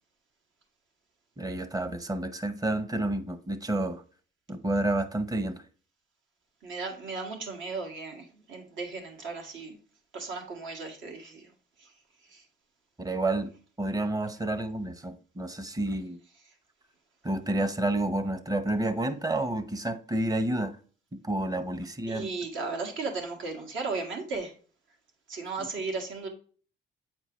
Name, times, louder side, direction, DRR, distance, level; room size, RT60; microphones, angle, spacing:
voice 1, 1.4-4.0 4.5-5.6 13.0-13.5 13.8-16.2 17.2-20.8 21.1-22.3, right 1 dB, 20° right, 0.8 m, -30 dB
voice 2, 6.6-9.8 10.1-11.5 11.8-11.9 12.3-12.4 22.1-24.5 25.3-26.3, right 4 dB, 75° right, 1.8 m, -35 dB
8.2 x 4.5 x 3.0 m
cardioid pair, 90°, 20 cm